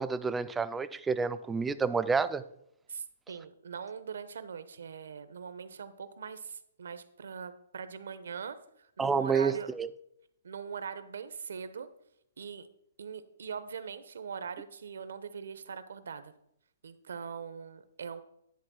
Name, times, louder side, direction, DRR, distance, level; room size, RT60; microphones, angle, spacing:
voice 1, 0.0-2.4 9.0-9.9, right 5 dB, 10° right, 0.3 m, -29 dB
voice 2, 2.9-9.7 10.4-11.9 12.4-12.7 13.0-16.3 16.8-18.2, right 6 dB, 80° right, 0.9 m, -41 dB
10.5 x 3.6 x 6.2 m
hypercardioid pair, 155°, 0 cm